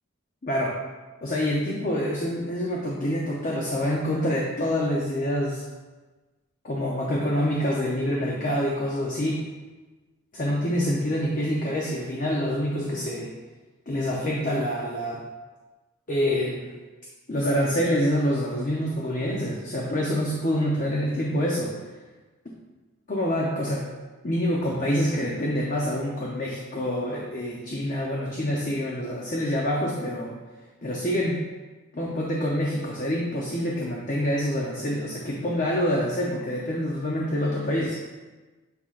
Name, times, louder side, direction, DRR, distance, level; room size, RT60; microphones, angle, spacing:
voice 1, 0.4-0.8 1.2-5.6 6.6-9.4 10.3-13.3 13.9-15.2 16.1-16.7 17.3-21.8 23.1-23.8 24.2-30.4 30.8-31.4 31.9-38.0, equal, 40° left, -3 dB, 0.7 m, -26 dB
7.8 x 5.7 x 2.5 m, 1.2 s
head